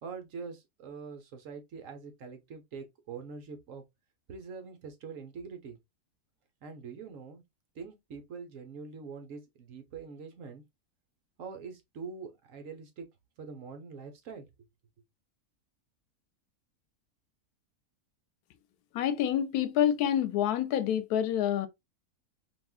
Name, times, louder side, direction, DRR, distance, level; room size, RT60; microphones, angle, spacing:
voice 1, 0.0-3.8 4.3-5.8 6.6-7.4 7.7-10.6 11.4-13.1 13.4-14.5, right 5 dB, 60° right, 1.2 m, -44 dB
voice 2, 18.9-21.7, left 10 dB, 85° left, 1.1 m, -27 dB
3.5 x 3.0 x 2.3 m
omnidirectional pair, 1.6 m